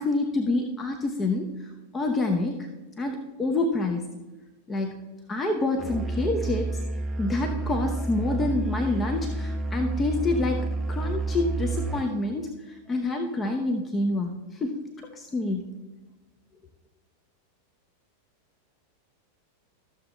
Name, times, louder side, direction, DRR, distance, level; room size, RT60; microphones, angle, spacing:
voice 1, 0.0-2.7 3.0-4.0 4.7-5.0 5.3-6.8 7.2-14.8 15.1-15.7, left 2 dB, 20° left, 3 dB, 0.9 m, -27 dB
Musical instrument, 5.8-12.2, right 3 dB, 15° right, 0.6 m, -30 dB
13.5 x 7.0 x 3.2 m, 1.1 s
figure-of-eight pair, 90°, 0 cm